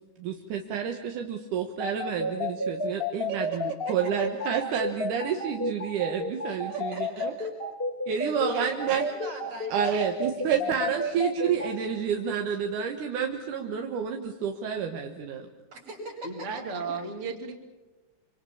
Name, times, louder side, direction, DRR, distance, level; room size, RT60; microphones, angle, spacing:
voice 1, 0.2-7.3 8.1-9.1 9.7-15.5, right 7 dB, 80° right, 4 dB, 2.9 m, -29 dB
sound 1, 1.8-11.7, left 2 dB, 20° left, 2.4 m, -31 dB
voice 2, 3.3-4.1 6.7-7.5 8.1-10.9 15.7-16.6, right 4 dB, 65° right, 0 dB, 7.7 m, -40 dB
voice 3, 16.2-17.6, right 4 dB, 25° right, 3 dB, 2.3 m, -34 dB
26.0 x 25.5 x 7.2 m, 1.1 s
omnidirectional pair, 3.6 m